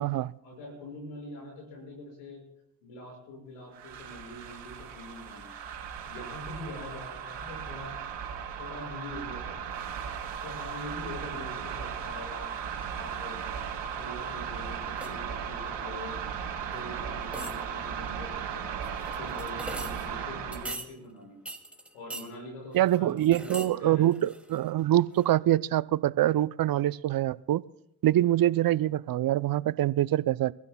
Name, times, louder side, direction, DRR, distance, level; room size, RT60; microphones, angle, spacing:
voice 1, 0.4-2.4 2.8-5.5 6.1-8.0 8.6-9.8 10.4-12.5 12.9-13.6 13.9-16.2 16.7-18.7 19.2-21.4 21.9-24.2, left 1 dB, 85° left, 0 dB, 6.2 m, -43 dB
sound 1, 3.7-20.8, right 7 dB, 65° right, 3.7 m, -37 dB
sound 2, 15.0-15.3 16.8-16.9 17.2-17.9 18.8-20.1 20.5-20.9 21.5-22.3 22.7-23.7 24.0-24.8 25.2-25.3, right 1 dB, 5° right, 2.4 m, -41 dB
voice 2, 22.7-27.6 28.0-30.5, right 13 dB, 50° right, 19 dB, 0.5 m, -25 dB
29.0 x 15.0 x 2.3 m, 0.77 s
hypercardioid pair, 50°, 47 cm